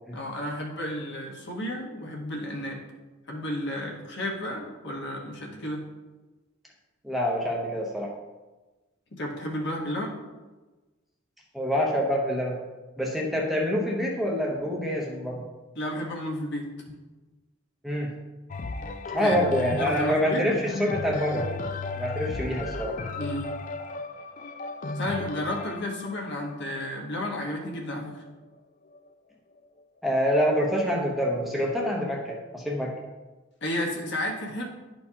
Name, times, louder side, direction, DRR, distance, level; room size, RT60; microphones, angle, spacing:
voice 1, 0.1-2.8 3.3-5.8 9.2-10.1 15.7-16.7 19.2-19.4 19.8-20.4 23.2-23.5 24.9-28.2 33.6-34.6, left 1 dB, 55° left, -1 dB, 1.3 m, -32 dB
voice 2, 7.0-8.1 11.5-12.6 13.0-15.4 17.8-18.1 19.1-21.5 21.9-22.9 30.0-32.9, equal, ahead, -2 dB, 0.8 m, -26 dB
sound 1, 18.5-28.3 28.9-29.0, left 3 dB, 40° left, 0.4 m, -35 dB
11.0 x 4.4 x 2.8 m, 1.2 s
head